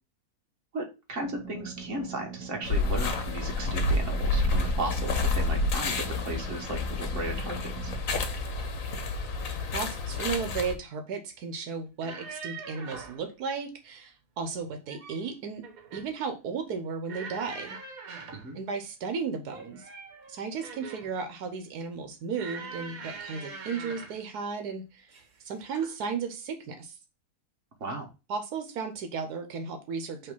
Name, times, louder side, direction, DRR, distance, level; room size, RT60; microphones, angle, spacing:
voice 1, 0.7-7.9 18.3-18.6 27.8-28.1, right 2 dB, 50° right, 2 dB, 1.7 m, -36 dB
sound 1, 1.2-8.0, right 5 dB, 5° left, 1.4 m, -43 dB
sound 2, 2.6-10.7, left 3 dB, 65° left, 1.3 m, -29 dB
voice 2, 9.7-15.6 15.9-17.8 18.5-19.9 20.3-27.0 28.3-30.3, right 5 dB, 85° right, 6 dB, 1.4 m, -35 dB
sound 3, 11.9-13.2 14.7-15.3 15.6-16.1 17.1-18.5 19.5-21.2 22.3-24.2 25.1-25.4 25.7-25.9, right 4 dB, 65° right, 1.6 m, -43 dB
5.6 x 3.1 x 5.3 m, 0.29 s
omnidirectional pair, 1.6 m